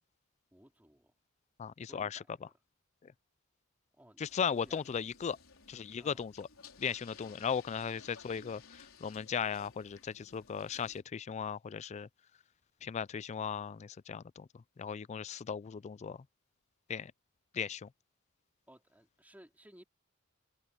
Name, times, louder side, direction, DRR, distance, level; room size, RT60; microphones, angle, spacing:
voice 1, 0.5-1.1 1.9-2.5 3.9-4.2 4.6-4.8 6.0-6.3 7.2-7.4 18.7-19.8, right 1 dB, 10° right, 4.0 m, -59 dB
voice 2, 1.6-2.2 3.0-3.1 4.2-5.4 5.7-6.5 6.8-12.1 12.8-14.5 14.8-16.2 16.9-17.1 17.5-17.9, left 7 dB, 35° left, 0.3 m, -37 dB
sound 1, 4.2-11.0, left 5 dB, 75° left, 4.5 m, -57 dB
head